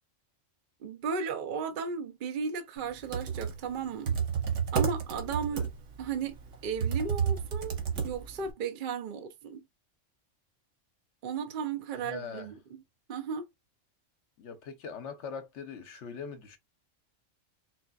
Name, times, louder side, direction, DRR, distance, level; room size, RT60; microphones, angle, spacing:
voice 1, 0.8-4.2 4.7-5.7 6.0-7.8 8.0-9.6 11.2-12.8 13.1-13.5, right 6 dB, 50° right, 0.7 m, -35 dB
Computer keyboard, 2.9-8.5, right 7 dB, 75° right, 1.3 m, -31 dB
voice 2, 11.9-12.5 14.4-16.6, left 6 dB, 70° left, 1.1 m, -42 dB
4.5 x 2.4 x 2.3 m
omnidirectional pair, 1.3 m